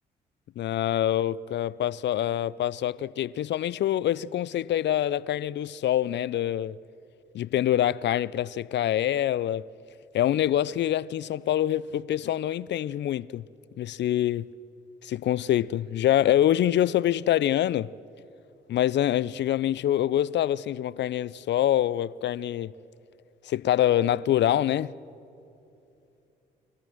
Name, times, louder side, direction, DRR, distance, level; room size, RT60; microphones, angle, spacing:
voice 1, 0.6-6.8 7.3-9.7 10.1-13.4 13.8-14.5 15.0-17.9 18.7-22.7 23.4-24.9, left 12 dB, 60° left, 0.5 m, -25 dB
30.0 x 23.5 x 6.3 m
hypercardioid pair, 45°, 21 cm